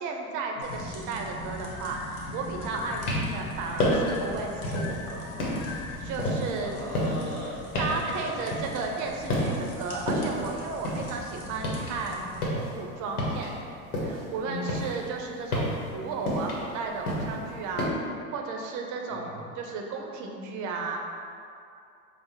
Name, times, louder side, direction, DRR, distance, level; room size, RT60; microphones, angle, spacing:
voice 1, 0.0-5.3 5.5-6.7 7.8-12.3 12.7-13.5 14.0-21.0, right 4 dB, 45° right, 1 dB, 0.5 m, -34 dB
sound 1, 0.6-12.5, left 1 dB, 35° left, 0.8 m, -42 dB
sound 2, 1.3-6.4, left 4 dB, 75° left, 0.5 m, -42 dB
sound 3, 2.8-3.4 3.8-4.2 4.6-5.0 5.4-9.0 9.3-9.8 10.1-12.0 12.3-14.3 14.6-17.9, left 1 dB, 90° left, 0.9 m, -30 dB
voice 2, 6.6-8.6 14.4-14.9 19.1-19.5, left 1 dB, ahead, -10 dB, 1.4 m, -39 dB
3.4 x 2.0 x 4.1 m, 2.5 s
hypercardioid pair, 85°, 44 cm